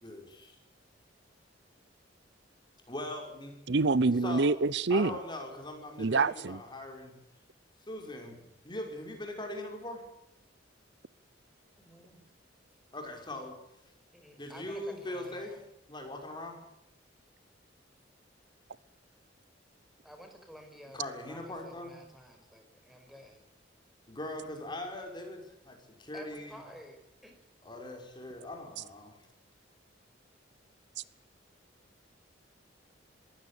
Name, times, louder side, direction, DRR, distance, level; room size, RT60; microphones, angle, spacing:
voice 1, 0.0-0.6 2.9-3.5 4.2-4.6 4.9-7.2 7.9-8.4 8.6-10.0 12.9-13.6 14.4-15.5 15.9-16.6 20.9-22.0 24.1-26.6 27.6-29.2, left 1 dB, 25° left, 5.8 m, -41 dB
voice 2, 3.7-5.2 6.0-6.6, right 3 dB, 65° right, 0.7 m, -26 dB
voice 3, 11.8-12.2 14.1-15.6 20.0-21.0 21.3-23.4 26.1-27.4, equal, ahead, 5.3 m, -52 dB
22.0 x 16.0 x 8.6 m
head